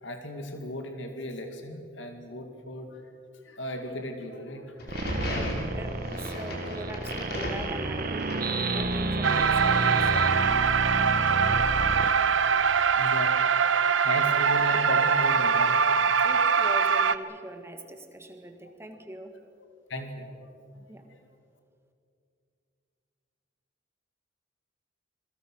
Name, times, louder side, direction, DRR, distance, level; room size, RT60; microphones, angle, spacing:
voice 1, 0.0-3.0 3.4-4.9 12.9-13.5 14.0-16.3 18.6-18.7 19.9-20.3 20.7-21.2, left 1 dB, 70° left, 5 dB, 2.4 m, -36 dB
sound 1, 4.8-9.1, left 1 dB, 55° left, 4.8 m, -36 dB
sound 2, 4.9-12.1, right 2 dB, 50° right, 1.8 m, -31 dB
voice 2, 5.3-10.3 14.2-14.4 16.2-19.4 20.9-21.0, right 1 dB, 15° right, 5 dB, 1.9 m, -42 dB
sound 3, 9.2-17.2, right 6 dB, 80° right, 0.9 m, -23 dB
28.0 x 22.5 x 6.4 m, 2.4 s
head